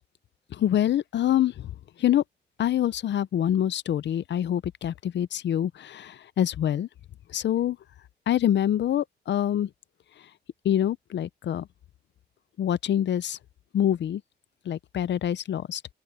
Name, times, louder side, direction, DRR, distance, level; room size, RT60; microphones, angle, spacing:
voice 1, 0.6-1.5 2.0-2.2 2.6-6.9 7.3-7.8 8.3-9.7 10.6-11.7 12.6-13.4 13.7-14.2 14.7-15.8, left 11 dB, 85° left, 0.6 m, -25 dB
open air
wide cardioid pair, 110°, 18 cm